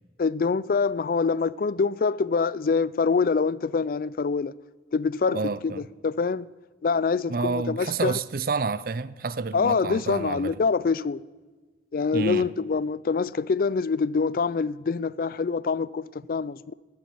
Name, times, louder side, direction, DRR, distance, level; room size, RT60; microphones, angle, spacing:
voice 1, 0.2-4.6 4.9-6.5 6.8-8.2 9.5-11.2 11.9-16.7, left 5 dB, 55° left, 0.4 m, -25 dB
voice 2, 5.3-5.9 7.3-10.6 12.1-12.5, right 4 dB, 55° right, 0.5 m, -29 dB
14.5 x 9.3 x 9.6 m
head